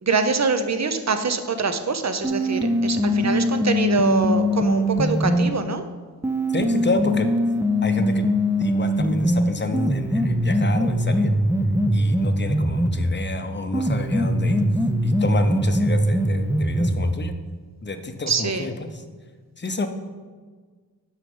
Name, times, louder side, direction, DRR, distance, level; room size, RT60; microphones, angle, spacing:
voice 1, 0.0-5.8 18.3-18.7, right 4 dB, 40° right, 8 dB, 0.8 m, -24 dB
sound 1, 2.2-5.5 6.2-13.2 13.7-17.2, equal, 5° right, 0.5 m, -22 dB
voice 2, 6.5-7.3 7.8-8.3 8.6-11.3 11.9-14.6 15.0-17.3 17.8-18.9 19.6-19.9, left 2 dB, 25° left, 8 dB, 0.8 m, -29 dB
6.4 x 4.9 x 5.4 m, 1.5 s
cardioid pair, 45°, 40 cm